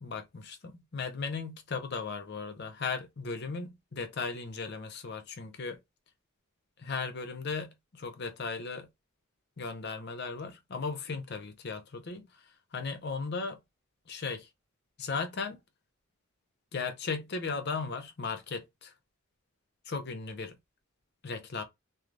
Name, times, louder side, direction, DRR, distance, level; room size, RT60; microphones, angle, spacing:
voice 1, 0.0-5.8 6.8-8.9 9.6-13.6 14.1-14.5 15.0-15.6 16.7-18.9 19.8-20.6 21.2-21.6, left 4 dB, 50° left, 0.5 m, -36 dB
3.2 x 2.3 x 2.5 m
head